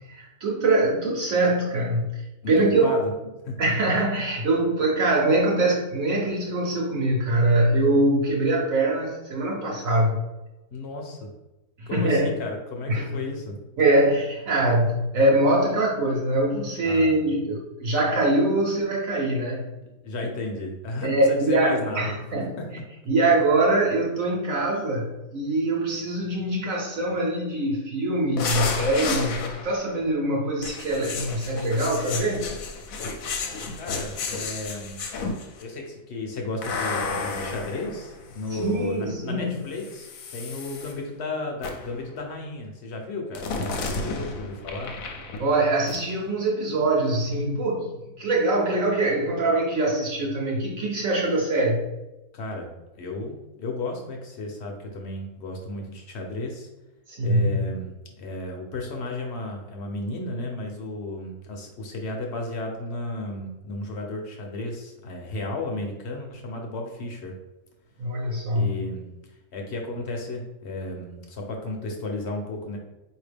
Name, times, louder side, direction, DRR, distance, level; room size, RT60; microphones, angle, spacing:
voice 1, 0.0-2.2 2.5-2.9 3.6-10.2 11.8-12.3 12.9-13.2 13.8-19.7 21.0-22.5 23.1-32.5 38.5-39.6 45.4-47.9 48.2-51.9 57.1-57.6 68.0-68.8, right 2 dB, 70° right, -3 dB, 1.2 m, -23 dB
voice 2, 2.4-3.1 3.4-3.6 10.7-11.3 11.9-13.6 16.8-17.2 20.0-22.1 22.4-22.6 33.8-35.0 35.6-44.9 52.3-56.7 57.2-67.3 68.5-72.8, left 2 dB, 55° left, 2 dB, 0.9 m, -33 dB
csound - convtest and pvoc, 28.4-29.9 30.6-35.6 36.6-38.8 39.7-40.9 41.6-42.0 43.4-45.6 45.9-46.0, left 4 dB, 75° left, 1.0 m, -32 dB
4.6 x 2.8 x 3.3 m, 1.0 s
omnidirectional pair, 1.5 m